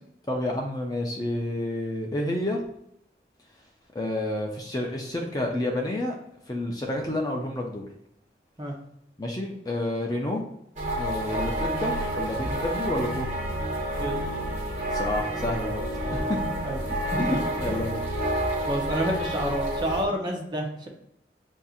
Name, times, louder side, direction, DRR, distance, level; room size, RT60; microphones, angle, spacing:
voice 1, 0.3-2.6 3.9-6.2 6.5-7.8 9.2-10.4 11.0-13.3 14.9-15.8 16.1-16.4 17.2-18.0, left 1 dB, 20° left, 0 dB, 0.5 m, -29 dB
sound 1, 10.8-20.0, right 1 dB, 40° right, 1.1 m, -29 dB
voice 2, 17.1-17.7 18.6-20.9, right 1 dB, 25° right, 0 dB, 0.8 m, -29 dB
7.0 x 2.7 x 2.4 m, 0.76 s
head